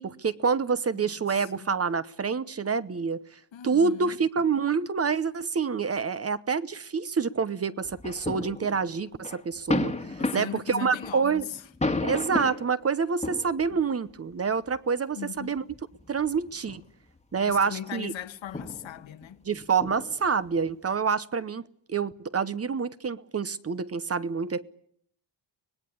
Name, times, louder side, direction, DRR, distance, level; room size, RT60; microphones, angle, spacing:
voice 1, 0.0-3.2 3.6-11.5 12.0-15.6 16.1-16.8 17.3-18.1 19.5-21.6 21.9-24.6, right 5 dB, 30° right, 0.9 m, -27 dB
voice 2, 0.9-1.7 3.5-4.2 9.8-11.6 13.7-13.8 15.1-15.7 17.3-19.5, left 10 dB, 75° left, 1.6 m, -39 dB
sound 1, 7.8-8.9 9.2-12.7 13.2-13.8 14.7-14.8 15.6-16.8 17.2-17.5 17.8-17.9 18.5-20.9, left 2 dB, 15° left, 1.6 m, -33 dB
25.0 x 19.0 x 8.5 m
cardioid pair, 120°, 46 cm